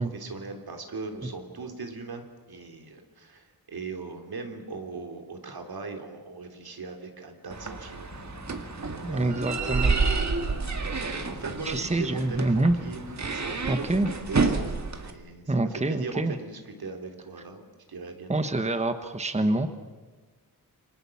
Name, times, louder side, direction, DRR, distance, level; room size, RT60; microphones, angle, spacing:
voice 1, 0.0-8.1 8.6-9.4 11.1-13.0 13.3-14.7 15.0-17.6 17.9-18.5, right 4 dB, 75° right, 4 dB, 3.3 m, -39 dB
sound 1, 7.5-15.1, right 4 dB, 45° right, 2.0 m, -29 dB
sound 2, 8.1-14.0, left 3 dB, 25° left, 1.5 m, -46 dB
voice 2, 9.0-10.0 11.6-12.8 13.7-14.1 15.5-16.4 18.3-19.7, right 2 dB, 20° right, 9 dB, 1.2 m, -26 dB
29.0 x 25.0 x 7.2 m, 1.3 s
wide cardioid pair, 135°, 37 cm